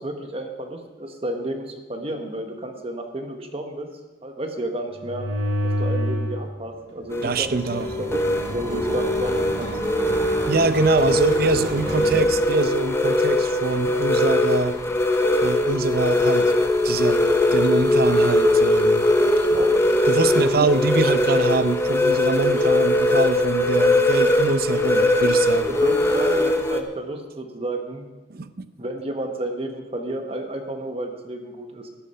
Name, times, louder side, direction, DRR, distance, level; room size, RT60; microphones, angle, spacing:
voice 1, 0.0-3.9 4.2-5.2 5.6-9.7 19.5-19.8 20.5-20.8 22.5-22.8 25.7-28.1 28.8-31.9, right 1 dB, 30° right, 4 dB, 1.2 m, -31 dB
sound 1, 5.0-6.4 6.8-12.2, equal, 75° right, 3.6 m, -30 dB
sound 2, 7.1-26.8, left 1 dB, 15° left, 0.8 m, -21 dB
voice 2, 7.2-7.9 10.5-14.8 15.4-16.5 16.8-19.1 19.3-19.6 20.1-25.8 28.3-28.7, right 3 dB, 55° right, 12 dB, 0.7 m, -24 dB
13.5 x 12.0 x 5.6 m, 1.2 s
head